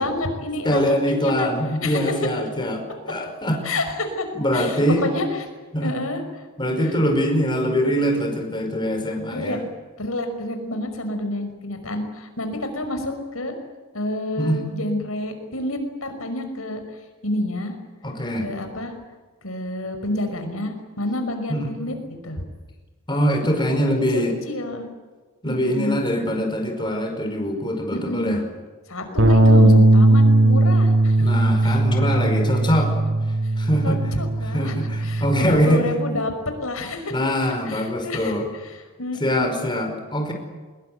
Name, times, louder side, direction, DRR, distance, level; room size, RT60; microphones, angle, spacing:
voice 1, 0.0-1.5 1.8-2.3 3.6-4.3 4.5-5.5 5.8-6.2 6.8-6.9 9.3-9.6 10.0-13.5 13.9-16.8 17.2-17.7 18.4-18.9 19.4-22.4 23.7-23.8 24.1-24.9 25.4-26.0 27.9-28.4 28.9-31.3 31.6-31.8 33.4-33.5 33.8-36.3 36.6-37.1 37.7-39.6, left 1 dB, 75° left, 6 dB, 5.6 m, -29 dB
voice 2, 0.7-3.7 4.3-5.1 5.7-5.9 6.6-9.6 14.4-14.6 18.0-18.5 21.5-21.7 23.1-24.4 25.4-28.4 31.2-33.0 33.6-34.0 34.5-35.9 37.1-38.4 39.2-40.3, equal, 20° left, 4 dB, 5.1 m, -23 dB
Bass guitar, 29.2-35.4, right 2 dB, 65° right, 5.7 m, -17 dB
24.5 x 22.5 x 9.3 m, 1.3 s
head